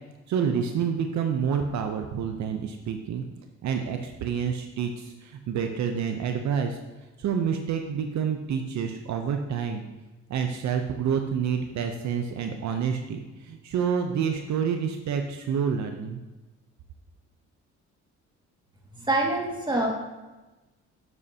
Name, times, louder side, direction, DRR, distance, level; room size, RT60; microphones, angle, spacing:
voice 1, 0.3-3.2 3.6-6.8 7.2-9.8 10.3-16.2, right 7 dB, 65° right, 5 dB, 0.7 m, -28 dB
voice 2, 19.0-19.9, right 2 dB, 15° right, -1 dB, 2.1 m, -25 dB
9.4 x 7.7 x 2.8 m, 1.1 s
cardioid pair, 90°, 30 cm